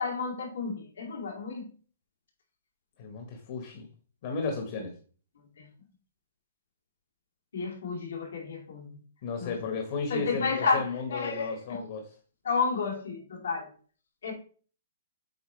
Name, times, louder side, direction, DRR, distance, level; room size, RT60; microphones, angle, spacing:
voice 1, 0.0-1.7 5.6-5.7 7.5-9.0 9.4-9.5 10.1-11.6 12.4-13.7 14.2-14.3, left 4 dB, 80° left, 0 dB, 2.7 m, -31 dB
voice 2, 3.0-3.9 4.2-4.9 9.2-12.1, left 4 dB, 40° left, 3 dB, 1.3 m, -34 dB
8.1 x 4.1 x 3.3 m, 0.41 s
hypercardioid pair, 165°, 0 cm